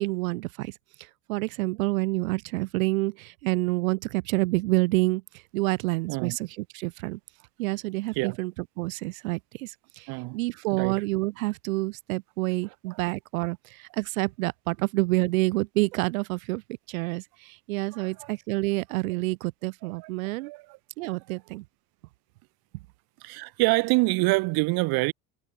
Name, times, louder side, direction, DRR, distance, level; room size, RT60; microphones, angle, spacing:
voice 1, 0.0-7.2 7.6-16.6 16.9-20.5 21.0-21.6, right 22 dB, 90° right, 1.0 m, -28 dB
voice 2, 10.7-11.0 17.9-18.3 20.0-20.1 20.4-20.6 23.2-25.1, right 25 dB, 65° right, 1.2 m, -26 dB
supercardioid pair, 100°, 40 cm